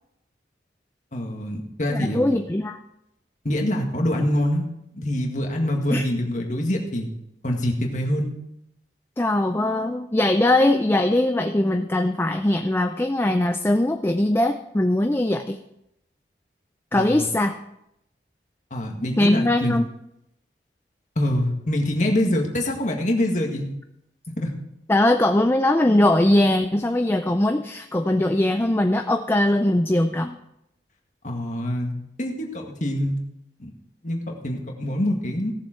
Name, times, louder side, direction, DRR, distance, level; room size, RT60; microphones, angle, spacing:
voice 1, 1.1-2.2 3.4-4.6 4.9-7.1 7.4-8.3 16.9-17.3 18.7-19.7 21.1-23.7 24.3-24.5 31.2-31.9 32.2-33.2 33.6-33.7 34.0-35.5, left 1 dB, 45° left, 1 dB, 1.8 m, -25 dB
voice 2, 1.9-2.8 5.9-6.1 9.2-15.6 16.9-17.6 19.2-19.9 24.9-30.4, left 1 dB, 15° left, 7 dB, 0.4 m, -21 dB
16.5 x 7.2 x 4.5 m, 0.82 s
head